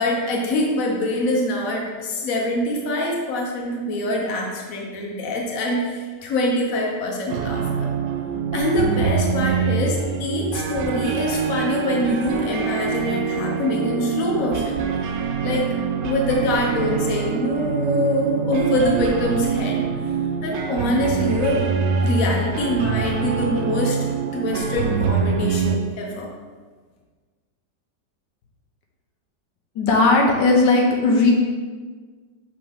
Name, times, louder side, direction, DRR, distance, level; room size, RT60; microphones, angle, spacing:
voice 1, 0.0-7.9 8.5-14.8 15.4-15.7 16.0-19.9 20.4-21.7 22.0-24.0 24.3-26.3, left 1 dB, 55° left, -1 dB, 1.3 m, -24 dB
sound 1, 7.3-25.8, right 5 dB, 80° right, 1.2 m, -25 dB
voice 2, 29.8-31.3, left 3 dB, 80° left, 0 dB, 1.5 m, -17 dB
6.0 x 5.2 x 3.6 m, 1.5 s
omnidirectional pair, 1.9 m